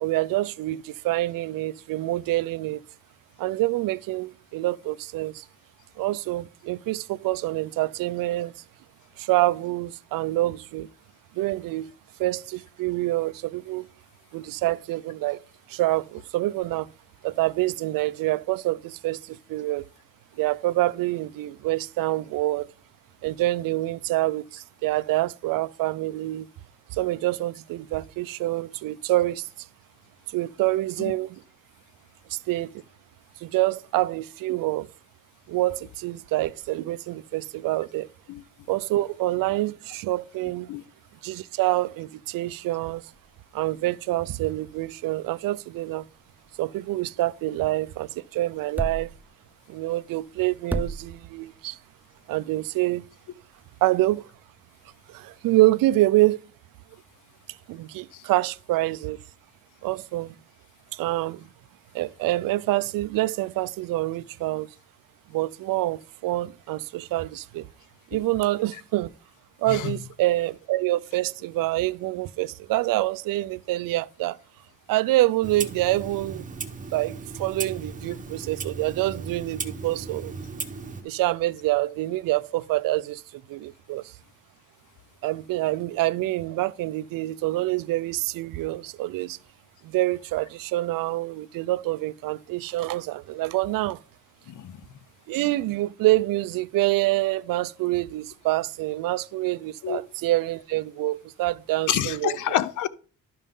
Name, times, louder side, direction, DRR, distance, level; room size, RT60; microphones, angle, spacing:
voice 1, 0.0-2.8 3.4-5.4 6.0-8.5 9.2-10.9 11.3-11.9 12.2-13.9 14.3-15.4 15.7-16.9 17.2-19.8 20.4-22.7 23.2-26.5 26.9-29.7 30.3-31.4 32.3-32.7 33.4-34.9 35.5-38.1 38.7-40.7 41.2-43.1 43.5-46.1 46.6-49.1 49.7-51.8 52.3-53.0 53.8-54.2 55.1-56.4 57.7-59.2 59.8-60.3 60.9-61.5 61.9-64.7 65.3-67.7 68.1-69.1 69.6-74.4 74.9-76.4 76.9-80.3 81.0-84.1 85.2-89.4 89.8-94.0 95.3-102.4, right 17 dB, 75° right, 0.5 m, -26 dB
sound 1, 42.9-55.7, right 2 dB, 5° right, 0.4 m, -41 dB
Clock, 75.4-81.0, right 4 dB, 25° right, 0.9 m, -36 dB
voice 2, 94.5-94.8 99.8-100.0 101.9-102.9, left 11 dB, 60° left, 0.7 m, -28 dB
12.0 x 5.4 x 3.7 m
cardioid pair, 140°, 34 cm